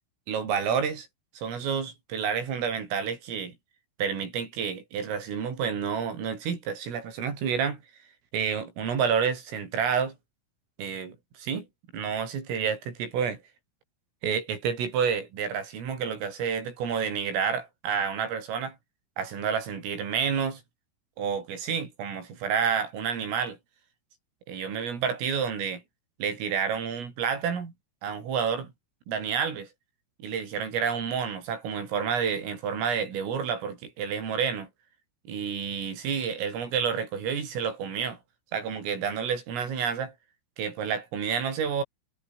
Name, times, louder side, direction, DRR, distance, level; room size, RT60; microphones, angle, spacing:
voice 1, 0.3-1.1 1.4-3.5 4.0-7.8 8.3-10.2 10.8-11.7 11.9-13.4 14.2-18.8 19.2-20.6 21.2-23.6 24.5-25.8 26.2-27.7 28.0-28.7 29.1-29.7 30.2-34.7 35.3-38.2 38.5-40.1 40.6-41.8, right 7 dB, 75° right, 7.8 m, -29 dB
omnidirectional pair, 5.9 m